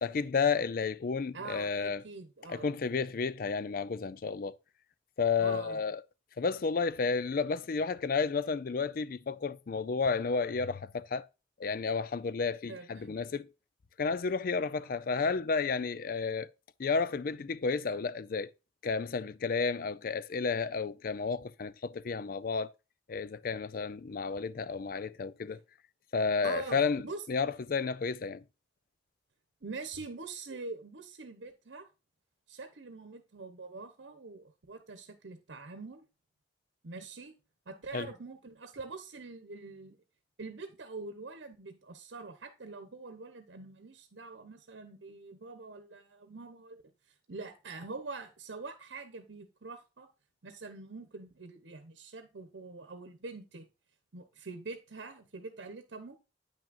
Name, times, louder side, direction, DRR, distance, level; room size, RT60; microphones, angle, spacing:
voice 1, 0.0-2.0 2.5-4.6 5.2-6.0 6.4-11.2 11.6-13.5 14.0-16.5 16.8-18.5 18.8-22.7 23.1-25.6 26.1-27.0 27.3-28.4 37.9-38.1, left 5 dB, 50° left, 0.4 m, -31 dB
voice 2, 1.3-2.7 5.4-5.8 12.7-13.2 14.8-14.9 26.4-27.2 29.6-31.9 32.5-36.1 36.8-37.3 37.7-40.0 40.4-46.8 47.1-50.1 50.4-53.7 54.1-56.2, right 3 dB, 90° right, 0.9 m, -44 dB
8.9 x 6.0 x 2.5 m
head